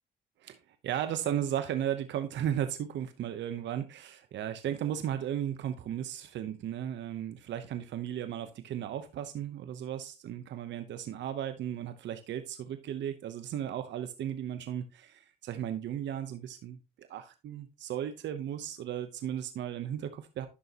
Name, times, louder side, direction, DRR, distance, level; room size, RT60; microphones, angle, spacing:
voice 1, 0.8-20.5, right 10 dB, 80° right, 9 dB, 0.8 m, -35 dB
11.0 x 6.3 x 2.9 m, 0.28 s
supercardioid pair, 65°, 19 cm